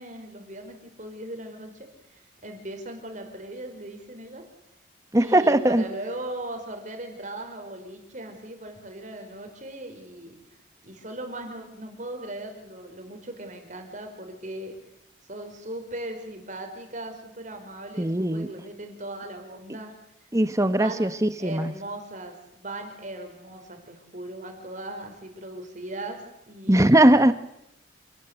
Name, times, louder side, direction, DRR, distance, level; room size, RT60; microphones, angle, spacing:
voice 1, 0.0-4.4 5.2-10.4 10.8-14.7 15.3-19.9 20.7-21.0 21.4-27.2, right 1 dB, 40° right, 5 dB, 5.1 m, -38 dB
voice 2, 5.1-5.8 18.0-18.5 20.3-21.7 26.7-27.3, right 1 dB, 15° right, 12 dB, 1.2 m, -20 dB
28.0 x 18.5 x 8.0 m, 0.83 s
head